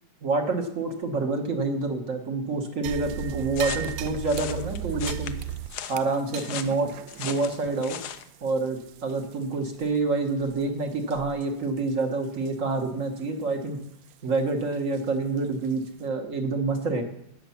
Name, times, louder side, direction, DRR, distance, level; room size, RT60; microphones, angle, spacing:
voice 1, 0.2-5.3 5.9-6.9 7.2-8.0 8.4-13.8 14.2-17.0, right 3 dB, 50° right, 4 dB, 1.9 m, -27 dB
sound 1, 2.8-9.4 9.8-9.9 10.4-10.6 11.1-11.4 11.8-11.9 12.5-12.6 14.9-15.0 15.6-15.7, right 11 dB, 70° right, 1.0 m, -36 dB
sound 2, 3.5-8.3, left 10 dB, 75° left, 1.3 m, -38 dB
18.0 x 6.9 x 5.8 m, 0.78 s
omnidirectional pair, 1.7 m